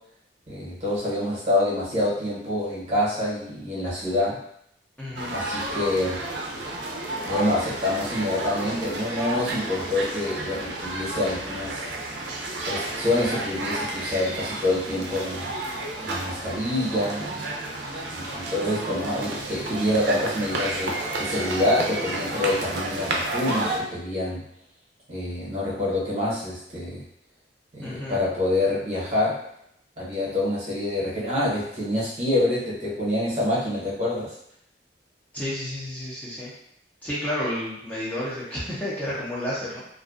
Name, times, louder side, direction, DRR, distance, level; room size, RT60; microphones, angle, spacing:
voice 1, 0.5-4.4 5.3-6.2 7.3-11.8 12.6-15.6 16.0-17.5 18.1-24.4 25.1-27.0 27.7-29.4 30.0-34.3, left 1 dB, 40° right, -7 dB, 0.8 m, -26 dB
voice 2, 5.0-5.4 27.8-28.2 35.3-36.5 37.0-39.8, left 1 dB, 10° left, -8 dB, 0.5 m, -31 dB
sound 1, 5.2-23.8, right 2 dB, 75° right, 0.5 m, -31 dB
2.4 x 2.2 x 2.4 m, 0.73 s
head